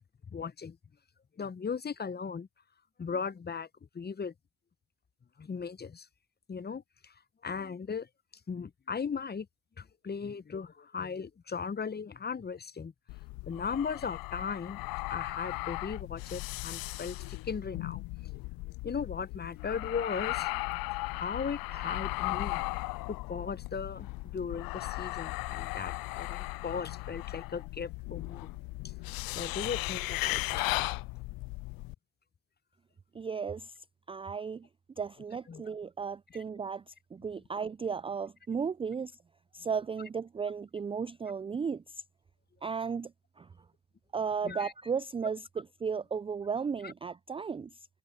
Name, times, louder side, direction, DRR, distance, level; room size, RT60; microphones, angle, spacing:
voice 1, 0.3-0.8 1.4-2.5 3.0-3.7 3.9-4.3 5.4-6.1 6.5-7.1 7.4-8.1 8.5-9.5 9.8-12.9 13.5-14.8 15.1-18.3 18.8-20.6 21.1-22.6 23.1-28.5 29.3-30.8 35.5-35.6 44.4-44.7 46.8-46.9, left 6 dB, 25° left, 1.1 m, -37 dB
sound 1, 13.1-31.9, left 21 dB, 60° left, 0.7 m, -37 dB
voice 2, 33.1-34.7 35.0-39.2 39.5-42.0 42.6-43.5 44.1-47.9, right 6 dB, 15° right, 0.4 m, -35 dB
hypercardioid pair, 55°, 41 cm